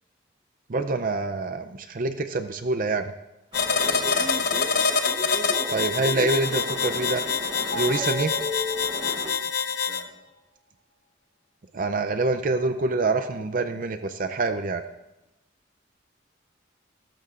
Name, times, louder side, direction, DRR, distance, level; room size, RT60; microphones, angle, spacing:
voice 1, 0.7-3.1 5.7-7.2 7.7-8.3 11.7-14.8, right 3 dB, 45° right, 8 dB, 0.5 m, -26 dB
sound 1, 3.5-10.0, left 6 dB, 55° left, 0.9 m, -26 dB
sound 2, 3.5-9.4, equal, 25° right, 1.0 m, -35 dB
voice 2, 3.6-4.7 9.4-9.5 9.9-10.3, left 1 dB, 15° left, -3 dB, 3.5 m, -45 dB
21.0 x 12.5 x 2.5 m, 0.98 s
head